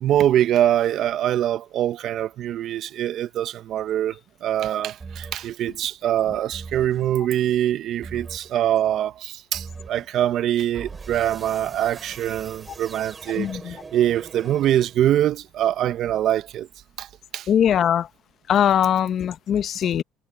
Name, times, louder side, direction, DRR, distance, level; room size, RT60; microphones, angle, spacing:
voice 1, 0.0-16.7 17.0-17.1 17.3-17.5, right 11 dB, 60° right, 1.1 m, -23 dB
sound 1, 5.0-5.6 6.5-7.1 8.0-8.6 9.5-10.1 10.7-15.1, right 4 dB, 30° right, 4.6 m, -41 dB
voice 2, 13.4-13.8 17.5-18.1 18.5-20.0, left 9 dB, 55° left, 1.0 m, -21 dB
supercardioid pair, 85°, 0 cm